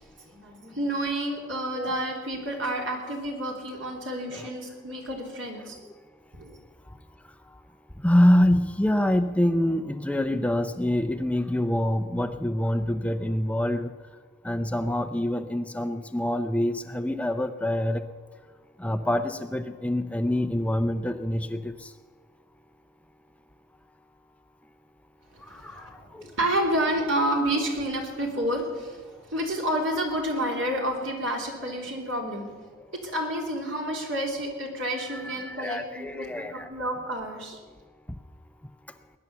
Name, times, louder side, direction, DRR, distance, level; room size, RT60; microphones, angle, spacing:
voice 1, 0.0-5.8 6.3-6.6 25.3-32.5 32.9-37.6, right 1 dB, 85° right, 1 dB, 3.4 m, -30 dB
voice 2, 8.0-13.9 14.4-18.0 18.8-21.7 25.6-25.7 26.1-26.2 35.1-36.7, left 1 dB, 5° left, 8 dB, 0.5 m, -25 dB
20.0 x 10.5 x 7.0 m, 1.5 s
head